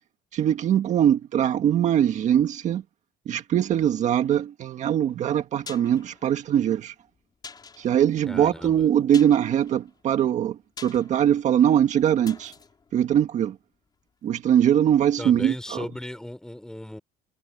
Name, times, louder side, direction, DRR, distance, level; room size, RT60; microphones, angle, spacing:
voice 1, 0.3-2.8 3.3-6.9 7.8-12.5 12.9-13.6 14.2-15.9, right 10 dB, 50° right, 1.6 m, -22 dB
sound 1, 5.3-14.1 14.4-14.5, left 5 dB, 25° left, 5.2 m, -48 dB
voice 2, 8.3-8.9 15.2-17.0, left 1 dB, 5° left, 5.8 m, -36 dB
cardioid pair, 130°, 16 cm